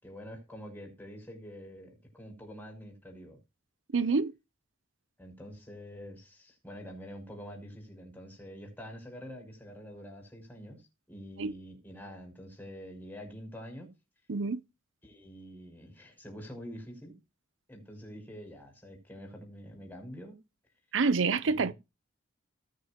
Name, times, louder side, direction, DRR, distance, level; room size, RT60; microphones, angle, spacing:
voice 1, 0.0-3.4 5.2-13.9 15.0-17.2 17.7-20.4 21.4-21.7, equal, 10° left, 5.7 m, -46 dB
voice 2, 3.9-4.3 11.4-11.5 14.3-14.6 20.9-21.7, right 4 dB, 75° right, 0.6 m, -27 dB
19.5 x 6.7 x 3.0 m
head